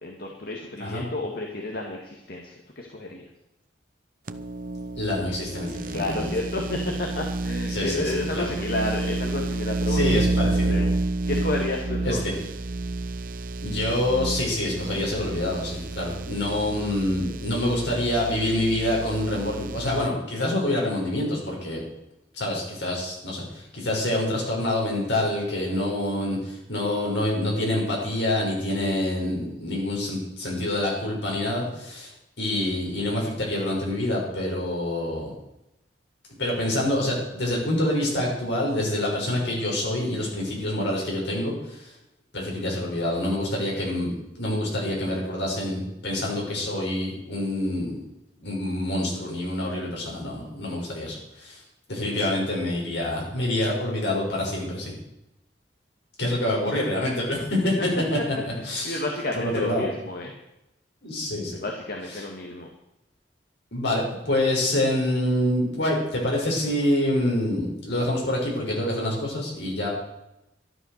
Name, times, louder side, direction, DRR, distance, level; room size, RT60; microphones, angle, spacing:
voice 1, 0.0-3.3 5.9-10.2 10.6-11.0 11.3-12.4 58.5-60.3 61.6-62.7, left 2 dB, 55° left, 1 dB, 1.8 m, -31 dB
sound 1, 4.3-20.1, right 2 dB, 50° right, 0.7 m, -30 dB
voice 2, 4.9-6.3 7.7-8.5 9.9-10.8 12.0-12.3 13.6-21.8 22.3-32.1 32.4-35.3 36.4-41.9 42.3-47.9 48.4-51.6 51.9-54.9 56.2-58.2 58.4-59.0 59.3-59.8 61.0-61.6 62.1-62.2 63.7-69.9, left 1 dB, 75° left, -2 dB, 6.2 m, -26 dB
12.5 x 11.5 x 6.6 m, 0.89 s
head